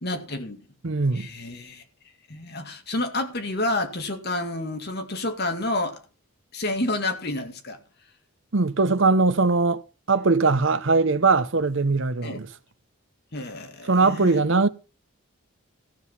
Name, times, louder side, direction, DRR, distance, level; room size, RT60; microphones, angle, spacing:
voice 1, 0.0-0.6 1.1-1.8 2.3-6.0 6.5-7.8 12.2-12.4 13.3-14.4, left 2 dB, 45° left, 2.0 m, -29 dB
voice 2, 0.8-1.3 8.5-12.5 13.9-14.7, right 3 dB, 55° right, 0.8 m, -21 dB
14.5 x 7.8 x 5.6 m
head